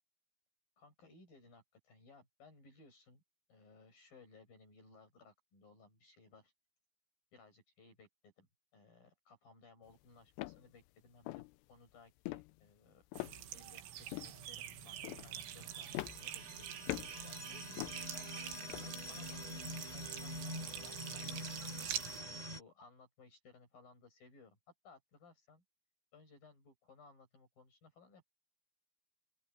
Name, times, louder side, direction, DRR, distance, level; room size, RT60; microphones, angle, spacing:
voice 1, 0.8-3.2 3.5-6.5 7.3-13.1 13.5-16.8 17.2-18.3 18.8-21.3 22.2-24.6 24.8-25.6 26.1-28.3, left 4 dB, 45° left, 8.2 m, -62 dB
sound 1, 9.9-10.0 10.4-10.6 11.3-11.5 12.3-12.5 13.1-13.7 14.1-14.4 15.0-15.3 15.9-16.6 16.9-17.2 17.8-18.1 18.7-18.9, left 20 dB, 85° left, 2.6 m, -43 dB
sound 2, 13.1-22.2, right 12 dB, 80° right, 4.0 m, -46 dB
sound 3, 14.2-22.6, left 1 dB, 10° right, 2.4 m, -47 dB
open air
omnidirectional pair, 5.5 m